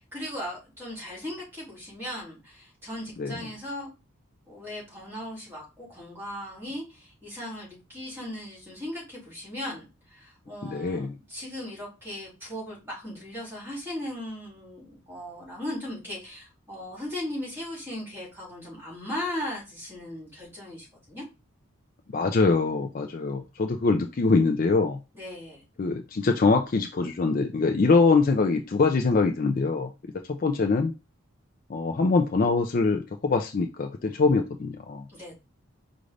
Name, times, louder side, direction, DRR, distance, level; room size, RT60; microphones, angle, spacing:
voice 1, 0.1-3.9 4.5-21.2 25.1-25.6 35.1-35.3, left 1 dB, 10° right, -4 dB, 2.4 m, -37 dB
voice 2, 10.6-11.2 22.1-25.0 25.8-29.9 30.3-30.9 31.7-35.0, left 4 dB, 40° left, 5 dB, 0.4 m, -23 dB
5.0 x 2.5 x 3.2 m, 0.27 s
head